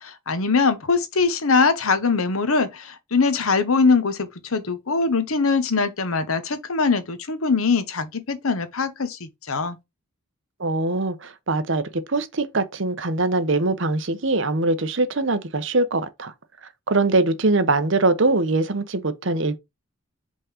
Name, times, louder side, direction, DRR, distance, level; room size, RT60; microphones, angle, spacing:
voice 1, 0.0-9.8, left 4 dB, 90° left, 1.1 m, -22 dB
voice 2, 10.6-11.8 12.1-16.3 16.9-19.6, right 2 dB, 60° right, 0.9 m, -22 dB
5.2 x 3.8 x 5.0 m
head